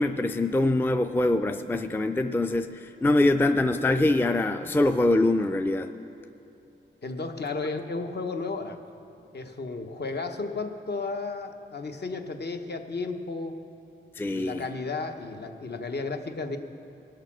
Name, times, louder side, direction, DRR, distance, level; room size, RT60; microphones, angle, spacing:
voice 1, 0.0-5.9 14.2-14.6, left 2 dB, 10° left, 8 dB, 0.4 m, -24 dB
voice 2, 7.0-8.8 9.3-13.6 14.3-16.6, left 3 dB, 55° left, 6 dB, 1.0 m, -33 dB
19.5 x 6.6 x 6.1 m, 2.7 s
wide cardioid pair, 80°, 21 cm